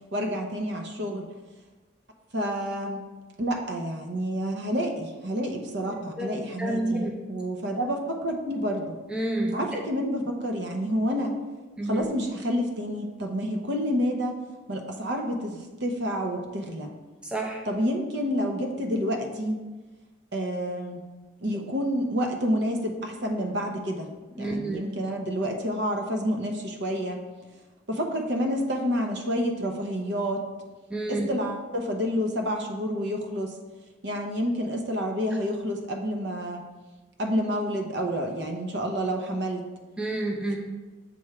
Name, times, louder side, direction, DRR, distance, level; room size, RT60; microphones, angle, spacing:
voice 1, 0.1-1.3 2.3-3.0 3.4-9.0 9.5-11.3 11.8-14.4 14.7-16.9 17.6-19.6 20.3-21.0 21.4-24.1 24.4-27.2 27.9-30.4 31.1-33.6 34.0-36.6 37.2-39.6, equal, 60° right, 3 dB, 0.7 m, -29 dB
voice 2, 5.9-6.3 6.6-7.1 9.1-9.8 11.8-12.1 17.2-17.6 24.4-24.8 30.9-31.3 40.0-40.6, right 2 dB, 5° right, -1 dB, 0.6 m, -29 dB
7.0 x 3.2 x 4.7 m, 1.2 s
head